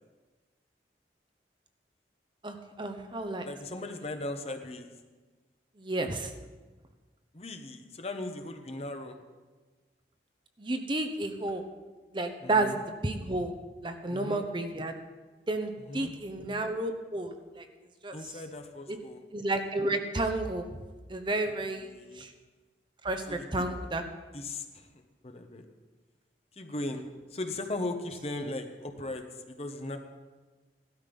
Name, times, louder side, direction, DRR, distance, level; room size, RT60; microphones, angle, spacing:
voice 1, 2.4-3.5 5.8-6.3 10.6-11.6 12.1-12.8 13.0-13.5 13.8-14.9 15.5-17.7 18.0-18.2 18.9-19.0 19.3-20.7 21.1-21.9 22.1-22.3 23.0-24.0, right 2 dB, 25° right, 6 dB, 0.9 m, -31 dB
voice 2, 3.4-4.9 7.3-9.2 12.4-12.8 14.1-14.5 15.8-16.1 18.1-19.2 21.8-22.2 23.3-23.6 24.3-25.7 26.5-27.0 27.3-30.0, left 2 dB, 35° left, 6 dB, 1.1 m, -38 dB
16.0 x 12.5 x 5.4 m, 1.3 s
head